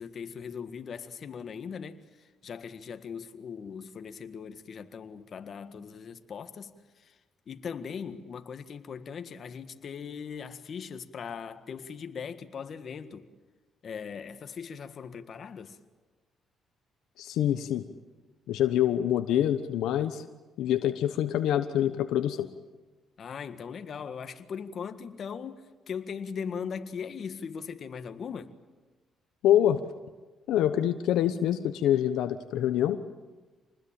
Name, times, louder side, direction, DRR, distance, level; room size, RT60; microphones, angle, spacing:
voice 1, 0.0-7.2 7.5-13.3 13.8-15.8 23.2-28.5, left 6 dB, 55° left, 1.7 m, -39 dB
voice 2, 17.2-17.8 18.5-20.2 20.6-22.5 29.4-29.8 30.5-33.0, left 11 dB, 85° left, 1.0 m, -25 dB
27.0 x 20.0 x 8.9 m
cardioid pair, 90°, 0 cm